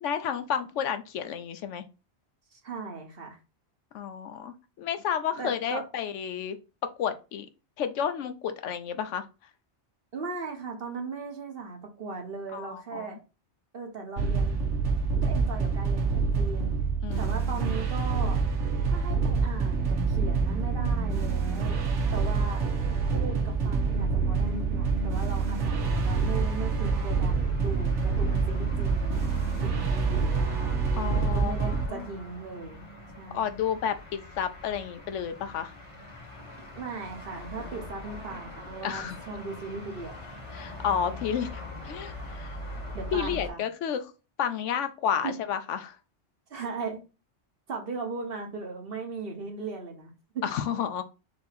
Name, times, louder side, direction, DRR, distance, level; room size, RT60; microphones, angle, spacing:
voice 1, 0.0-1.8 3.9-6.6 7.0-7.5 7.8-9.3 12.5-13.2 17.0-17.4 30.9-32.1 33.3-35.7 38.8-39.2 40.5-42.6 43.1-44.1 44.4-46.0 50.4-51.0, left 8 dB, 85° left, 1.0 m, -31 dB
voice 2, 2.5-3.4 5.4-5.8 10.1-13.2 13.7-14.6 15.2-16.7 17.2-18.4 18.8-21.8 22.1-22.6 23.1-30.6 31.3-32.8 33.2-33.5 36.8-40.1 42.9-43.6 45.2-45.4 46.5-47.0 47.7-50.4, right 4 dB, 55° right, 1.2 m, -38 dB
sound 1, 14.2-31.9, right 4 dB, 85° right, 1.2 m, -26 dB
sound 2, 25.8-43.5, equal, 30° left, 0.9 m, -41 dB
4.3 x 2.7 x 4.0 m
omnidirectional pair, 1.2 m